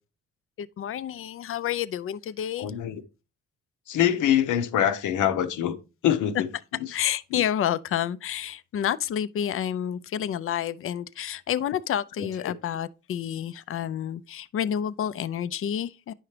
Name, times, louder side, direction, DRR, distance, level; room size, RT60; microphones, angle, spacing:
voice 1, 0.6-2.7 6.3-6.4 6.9-16.1, left 10 dB, 45° left, 0.5 m, -29 dB
voice 2, 2.6-3.0 3.9-5.8 6.0-6.5 7.3-7.4 12.2-12.5, left 10 dB, 80° left, 0.9 m, -24 dB
10.0 x 5.8 x 3.3 m
cardioid pair, 90°, 30 cm